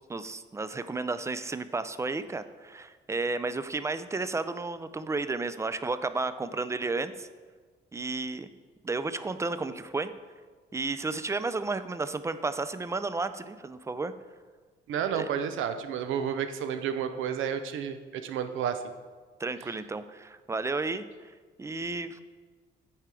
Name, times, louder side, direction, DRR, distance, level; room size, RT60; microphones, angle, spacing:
voice 1, 0.1-7.3 7.9-8.5 8.8-10.1 10.7-14.1 15.1-15.3 19.4-21.1 21.6-22.2, right 3 dB, 15° right, 12 dB, 0.4 m, -32 dB
voice 2, 14.9-18.8 19.6-19.7, right 8 dB, 85° right, 9 dB, 0.6 m, -31 dB
8.7 x 4.5 x 4.8 m, 1.4 s
cardioid pair, 90°, 20 cm